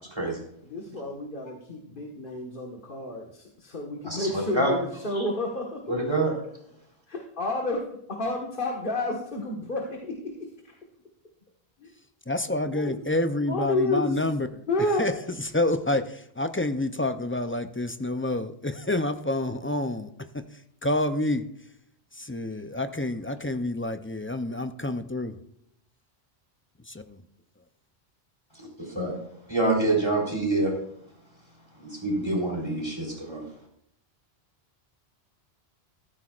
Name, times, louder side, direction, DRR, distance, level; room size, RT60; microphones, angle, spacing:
voice 1, 0.7-5.8 7.1-7.8 8.1-10.7 11.8-11.9 12.6-13.0 13.5-14.2 14.7-15.1, left 2 dB, 50° left, 1.8 m, -30 dB
voice 2, 4.0-4.7 5.1-5.3 5.9-6.3 28.6-29.2 29.5-30.7 31.8-33.4, right 2 dB, 25° right, 4.0 m, -26 dB
voice 3, 12.3-14.6 14.9-20.1 20.3-20.4 20.8-21.5 22.1-25.4 26.9-27.2, left 1 dB, 20° left, 0.4 m, -28 dB
14.5 x 14.0 x 2.5 m
omnidirectional pair, 1.1 m